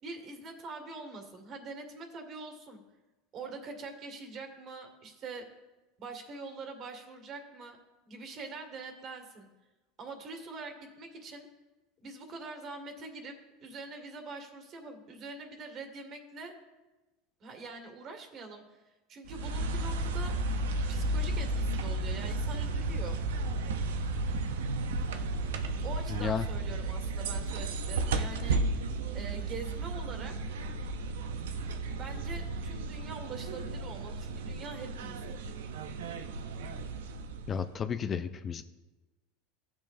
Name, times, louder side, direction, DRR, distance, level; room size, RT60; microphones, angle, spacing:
voice 1, 0.0-2.8 3.3-5.5 6.0-7.8 8.1-9.5 10.0-11.5 12.0-13.3 13.6-16.5 17.4-20.4 20.9-23.2 25.8-28.6 29.1-30.4 32.0-35.4, right 3 dB, 45° right, 4 dB, 1.9 m, -44 dB
sound 1, 19.3-37.7, right 2 dB, 85° right, 0.6 m, -33 dB
voice 2, 26.1-26.5 37.5-38.6, left 7 dB, 30° left, 10 dB, 0.5 m, -32 dB
14.5 x 7.1 x 2.6 m, 1.1 s
hypercardioid pair, 100°, 0 cm